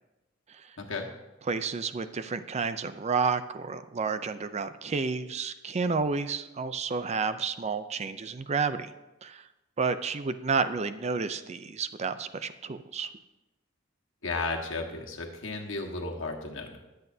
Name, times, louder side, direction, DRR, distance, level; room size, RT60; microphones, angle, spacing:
voice 1, 1.5-8.9 9.2-9.5 9.8-13.1, right 5 dB, 35° right, 11 dB, 0.5 m, -30 dB
voice 2, 14.2-16.8, left 3 dB, 80° left, 1 dB, 1.5 m, -34 dB
19.5 x 8.0 x 2.7 m, 1.0 s
head